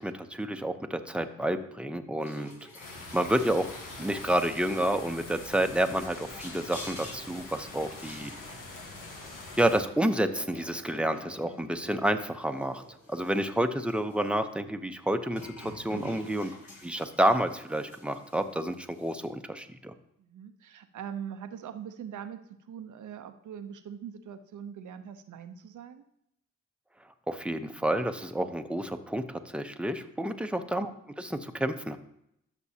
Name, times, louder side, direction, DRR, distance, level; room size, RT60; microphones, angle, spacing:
voice 1, 0.0-2.5 3.1-3.7 4.0-8.3 9.6-12.8 13.1-16.5 16.8-19.9 27.3-30.9 31.2-32.0, right 1 dB, 5° right, 7 dB, 0.9 m, -29 dB
sound 1, 2.2-14.4 15.2-19.3, left 1 dB, 60° left, 3.6 m, -49 dB
sound 2, 2.8-9.8, left 2 dB, 80° left, 1.5 m, -44 dB
Bowed string instrument, 5.5-8.7 9.7-12.6, left 2 dB, 30° left, 2.0 m, -56 dB
voice 2, 20.2-26.0, right 8 dB, 70° right, 9 dB, 0.8 m, -42 dB
13.5 x 6.1 x 2.9 m, 0.77 s
supercardioid pair, 45°, 31 cm